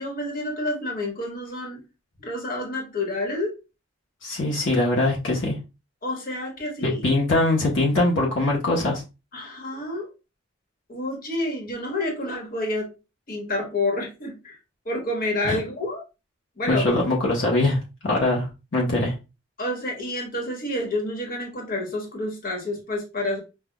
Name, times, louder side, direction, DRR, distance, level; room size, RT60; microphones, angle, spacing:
voice 1, 0.0-1.8 2.2-3.5 6.0-7.0 9.3-10.1 10.9-12.9 13.3-14.6 14.8-16.0 16.6-16.9 19.6-23.4, left 1 dB, 45° left, 0 dB, 1.3 m, -29 dB
voice 2, 4.2-5.6 6.8-9.0 15.4-15.6 16.7-19.1, left 2 dB, 65° left, -3 dB, 1.0 m, -22 dB
5.6 x 2.4 x 2.3 m, 0.27 s
head